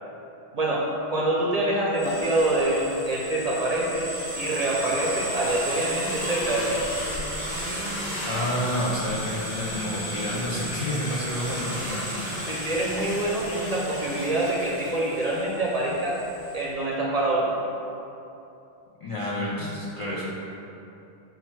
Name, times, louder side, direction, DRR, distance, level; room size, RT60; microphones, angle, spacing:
voice 1, 1.1-4.1 4.3-6.8 12.5-16.1 16.5-17.5, right 2 dB, 50° right, -5 dB, 0.5 m, -25 dB
sound 1, 1.9-16.6, equal, 70° left, 1.4 m, -33 dB
voice 2, 8.2-12.1 19.0-20.3, equal, 45° left, -7 dB, 0.4 m, -29 dB
4.3 x 2.3 x 4.5 m, 2.8 s
omnidirectional pair, 1.0 m